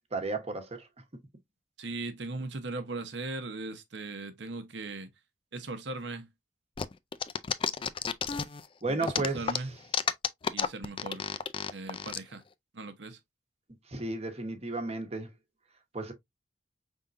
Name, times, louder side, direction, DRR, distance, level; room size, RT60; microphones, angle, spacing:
voice 1, 0.1-0.9 8.8-9.5 13.9-15.3 15.9-16.1, right 2 dB, 35° right, 1.1 m, -33 dB
voice 2, 1.8-5.1 5.5-6.3 8.9-9.7 10.5-11.3 11.6-12.4 12.7-13.2, right 3 dB, 70° right, 0.9 m, -38 dB
sound 1, 6.8-8.7 9.0-12.2, left 6 dB, 30° left, 0.4 m, -31 dB
5.4 x 3.6 x 2.5 m
head